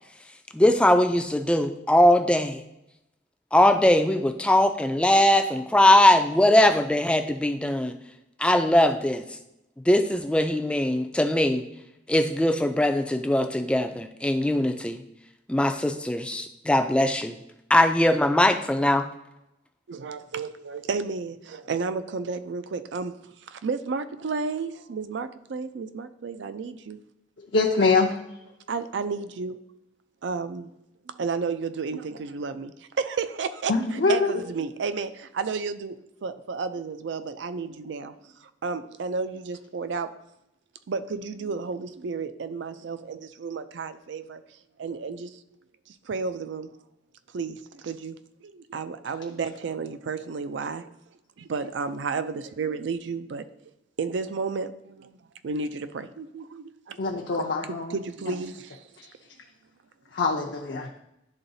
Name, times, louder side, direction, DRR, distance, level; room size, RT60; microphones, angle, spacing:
voice 1, 0.5-2.6 3.5-7.9 8.4-9.2 9.9-11.6 12.1-15.0 15.5-17.3 17.7-19.0, left 1 dB, 5° left, 7 dB, 0.3 m, -21 dB
voice 2, 19.9-23.1 23.5-27.0 28.7-29.6 30.2-30.7 31.1-36.0 36.2-40.1 40.9-44.4 44.8-45.4 45.9-46.7 47.3-48.2 48.4-50.9 51.4-53.5 54.0-55.2 55.4-57.5 57.9-58.8, right 4 dB, 70° right, 11 dB, 0.4 m, -32 dB
voice 3, 27.5-28.1 33.7-34.3 57.0-58.0 59.0-59.1 60.1-60.9, left 4 dB, 65° left, 0 dB, 0.6 m, -23 dB
10.5 x 3.8 x 2.7 m, 0.86 s
head